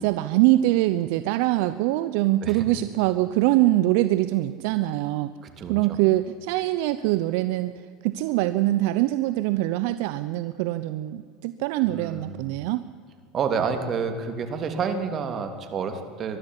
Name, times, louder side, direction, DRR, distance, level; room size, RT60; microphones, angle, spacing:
voice 1, 0.0-5.3 5.7-7.7 8.0-12.8, right 16 dB, 70° right, 13 dB, 0.7 m, -23 dB
voice 2, 11.8-12.5 13.3-16.4, right 6 dB, 40° right, 7 dB, 2.9 m, -29 dB
21.0 x 12.5 x 9.9 m, 2.2 s
hypercardioid pair, 95°, 0 cm